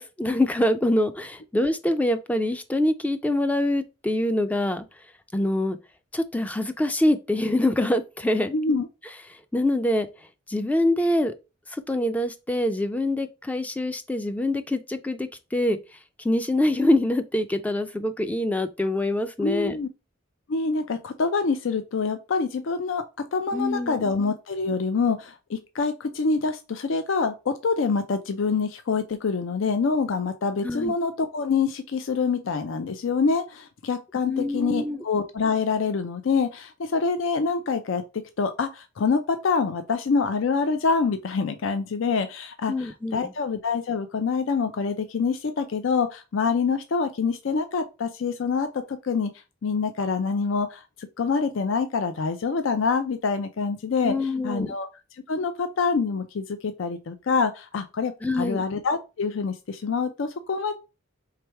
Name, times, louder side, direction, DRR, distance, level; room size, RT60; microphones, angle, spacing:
voice 1, 0.0-4.9 5.3-5.8 6.1-8.5 9.5-10.1 10.5-11.3 11.7-15.8 16.2-19.8 23.5-24.1 30.6-30.9 34.2-35.0 42.7-43.3 54.0-54.7 58.2-58.7, left 1 dB, 10° left, 0.3 m, -25 dB
voice 2, 8.5-8.9 19.4-19.9 20.5-23.0 23.3-49.3 49.6-54.9 55.3-60.7, left 4 dB, 75° left, 0.5 m, -26 dB
3.4 x 3.3 x 4.4 m
head